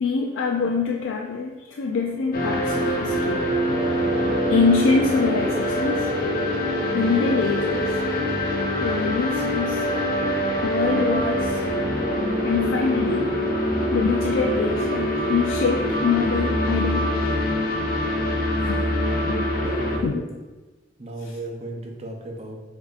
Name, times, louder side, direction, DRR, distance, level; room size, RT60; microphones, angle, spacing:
voice 1, 0.0-3.4 4.5-6.1 6.9-7.9 8.7-9.9 10.6-11.6 12.4-13.3 13.9-17.4 18.7-18.8 19.2-19.5 20.0-20.2 21.2-21.4, left 5 dB, 80° left, 2 dB, 0.3 m, -25 dB
sound 1, 2.3-20.0, equal, 50° left, 0.8 m, -24 dB
voice 2, 19.6-20.2 21.0-22.6, right 1 dB, 35° right, 1 dB, 0.6 m, -35 dB
6.8 x 2.7 x 2.4 m, 1.2 s
head